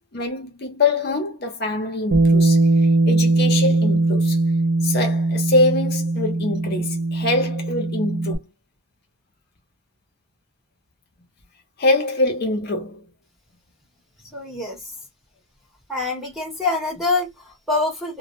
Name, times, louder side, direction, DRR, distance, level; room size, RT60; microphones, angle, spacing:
voice 1, 0.1-2.6 3.1-4.4 4.8-8.4 11.8-13.0, left 2 dB, 45° left, 0.6 m, -23 dB
Bass guitar, 2.1-8.4, right 2 dB, 65° right, 0.6 m, -20 dB
voice 2, 14.3-14.8 15.9-18.2, left 3 dB, ahead, 0.9 m, -25 dB
2.1 x 2.0 x 2.9 m
head